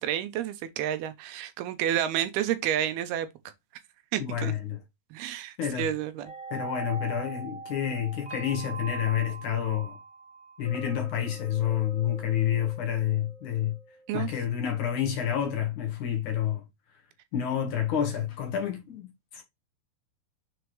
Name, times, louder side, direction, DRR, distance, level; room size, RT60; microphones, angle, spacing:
voice 1, 0.0-3.3 4.1-4.5 5.1-6.3 14.1-14.3, right 11 dB, 80° right, 2.6 m, -30 dB
voice 2, 4.2-4.8 5.6-5.9 6.5-10.0 10.6-13.8 14.1-16.6 17.3-19.4, left 10 dB, 60° left, 2.5 m, -29 dB
sound 1, 6.2-14.3, right 4 dB, 25° left, 0.5 m, -42 dB
7.1 x 4.7 x 3.1 m
omnidirectional pair, 4.6 m